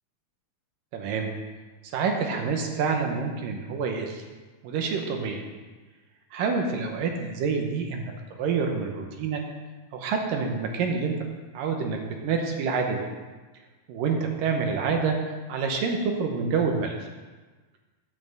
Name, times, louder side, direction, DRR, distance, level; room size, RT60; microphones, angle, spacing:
voice 1, 0.9-1.3 1.9-4.2 4.6-5.4 6.3-8.1 8.4-9.4 9.9-11.2 11.5-13.1 13.9-15.2 15.5-17.1, right 5 dB, 75° right, 3 dB, 2.5 m, -27 dB
9.5 x 5.8 x 7.9 m, 1.3 s
omnidirectional pair, 4.3 m